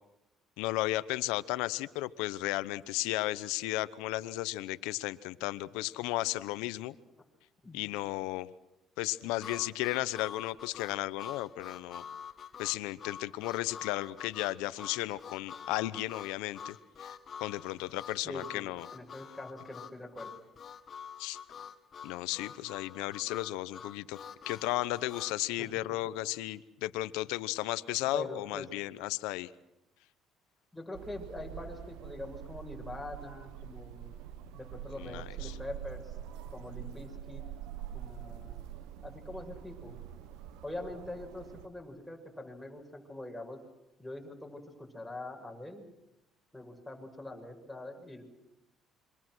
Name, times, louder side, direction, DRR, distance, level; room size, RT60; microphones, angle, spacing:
voice 1, 0.6-6.9 7.7-8.5 9.0-12.0 12.6-18.9 21.2-21.4 22.0-24.2 24.5-29.5 35.0-35.6, left 17 dB, 90° left, 15 dB, 0.9 m, -34 dB
Harmonica, 9.4-25.4, left 7 dB, 45° left, 1.8 m, -47 dB
voice 2, 18.2-20.3 25.6-25.7 28.1-28.7 30.7-34.1 34.5-36.2 36.5-37.4 37.9-38.7 39.0-40.0 40.6-43.6 44.0-45.8 46.5-48.2, left 2 dB, 5° left, 0 dB, 6.8 m, -43 dB
sound 1, 30.9-41.7, right 10 dB, 85° right, 1.2 m, -45 dB
27.0 x 24.5 x 6.3 m, 0.91 s
cardioid pair, 90°, 0 cm